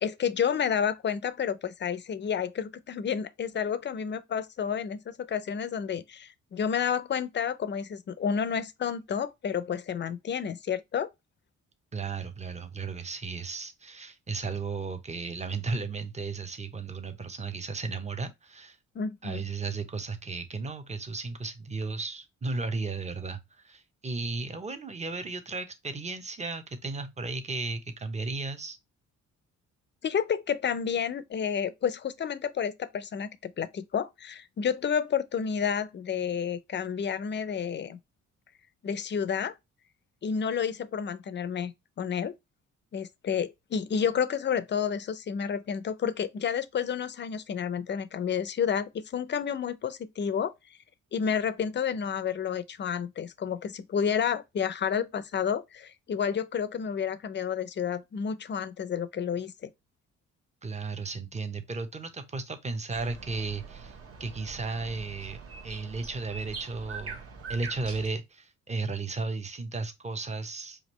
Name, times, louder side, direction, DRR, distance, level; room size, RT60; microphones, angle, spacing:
voice 1, 0.0-11.1 18.9-19.4 30.0-38.0 38.8-39.5 40.2-42.3 42.9-50.5 51.1-59.7, left 7 dB, 35° left, 0.6 m, -30 dB
voice 2, 11.9-18.8 19.2-28.8 60.6-63.9 64.2-67.2 67.5-70.8, right 3 dB, 20° right, 0.9 m, -35 dB
sound 1, 62.9-68.1, right 4 dB, 50° right, 1.3 m, -43 dB
5.0 x 2.5 x 3.0 m
cardioid pair, 90°, 30 cm